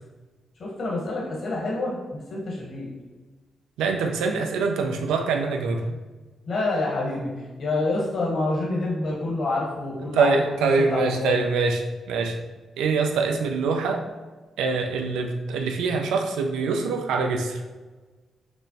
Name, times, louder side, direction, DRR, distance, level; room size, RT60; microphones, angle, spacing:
voice 1, 0.6-2.9 6.5-10.4 10.9-11.3, left 2 dB, 65° left, -3 dB, 1.0 m, -27 dB
voice 2, 3.8-6.0 10.1-12.3 12.8-14.0 14.6-17.6, right 4 dB, 85° right, 3 dB, 0.4 m, -24 dB
6.0 x 2.1 x 2.7 m, 1.3 s
supercardioid pair, 50°, 0 cm